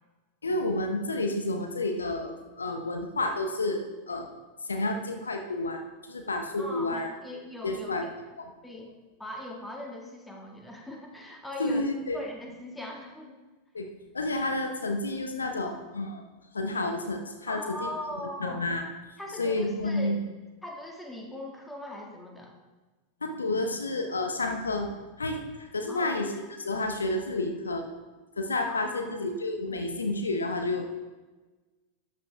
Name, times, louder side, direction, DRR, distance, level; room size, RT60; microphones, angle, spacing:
voice 1, 0.4-4.3 4.6-7.1 7.6-8.1 8.4-8.5 11.6-12.2 13.7-13.9 14.1-16.2 16.5-17.9 18.4-18.8 19.4-20.2 23.2-24.9 25.2-27.9 28.4-30.9, left 2 dB, 75° left, 5 dB, 0.9 m, -30 dB
voice 2, 6.6-7.9 8.6-8.9 9.2-13.4 17.5-18.7 19.2-20.2 20.6-22.5 25.9-26.1 28.7-29.2, left 1 dB, 5° left, 0 dB, 1.9 m, -40 dB
12.5 x 9.1 x 3.5 m, 1.2 s
figure-of-eight pair, 90°, 0 cm